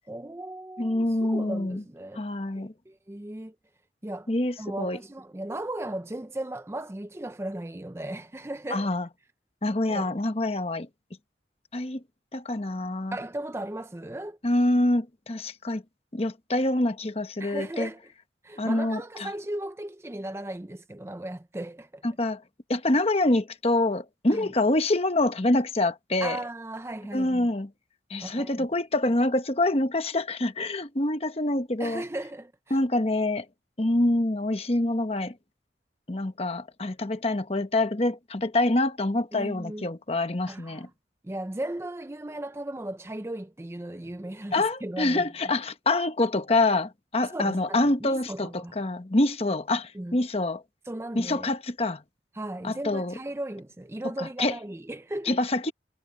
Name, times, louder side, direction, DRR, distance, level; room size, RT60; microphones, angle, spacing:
voice 1, 0.1-2.3 2.6-3.6 4.0-4.3 4.6-8.9 9.9-10.1 13.1-14.4 17.4-18.0 18.4-22.0 24.3-24.5 26.2-27.5 28.2-28.7 31.8-32.8 39.3-39.9 40.5-40.9 41.2-45.3 47.3-48.7 49.9-50.2 50.9-51.5 52.3-55.4, right 1 dB, 15° right, 0.5 m, -36 dB
voice 2, 0.8-1.8 2.2-2.7 4.3-5.0 8.7-9.1 9.6-10.9 11.7-12.0 12.3-13.2 14.4-15.8 16.1-17.9 18.6-19.3 22.0-22.4 22.7-26.4 27.1-27.7 28.1-32.0 32.7-33.5 33.8-35.3 36.1-40.9 44.5-50.6 51.1-52.0 52.6-53.1 54.2-54.5 55.3-55.7, left 2 dB, 35° left, 1.1 m, -26 dB
head